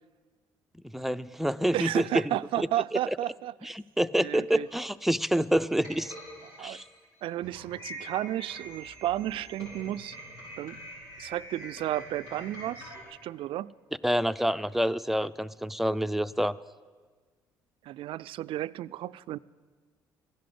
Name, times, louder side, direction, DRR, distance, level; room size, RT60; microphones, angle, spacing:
voice 1, 0.9-2.2 2.6-2.7 3.6-6.1 6.6-6.8 14.0-16.6, right 1 dB, ahead, 12 dB, 0.5 m, -27 dB
voice 2, 1.7-3.7 4.2-4.7 6.6-6.8 7.2-10.2 10.6-10.8 11.2-13.7 17.8-19.4, right 14 dB, 65° right, 15 dB, 0.4 m, -33 dB
sound 1, 4.6-13.0, equal, 90° left, 6.0 m, -45 dB
15.0 x 11.0 x 7.8 m, 1.4 s
hypercardioid pair, 60°, 10 cm